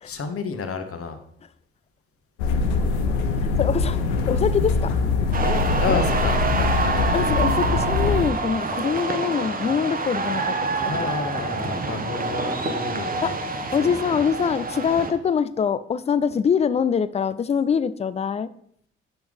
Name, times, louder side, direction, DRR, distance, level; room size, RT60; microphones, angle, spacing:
voice 1, 0.0-1.2 5.4-7.2 10.8-13.4 13.8-14.1, left 5 dB, 45° left, 7 dB, 1.1 m, -30 dB
sound 1, 2.4-8.3, left 4 dB, 75° left, 0.7 m, -23 dB
voice 2, 3.4-4.0 4.3-4.9 5.9-6.0 7.1-10.7 13.2-13.3 13.7-18.5, left 7 dB, 20° left, 15 dB, 0.4 m, -24 dB
sound 2, 5.3-15.1, right 3 dB, 25° right, 0.9 m, -27 dB
7.9 x 5.9 x 3.6 m, 0.67 s
figure-of-eight pair, 40°, 33 cm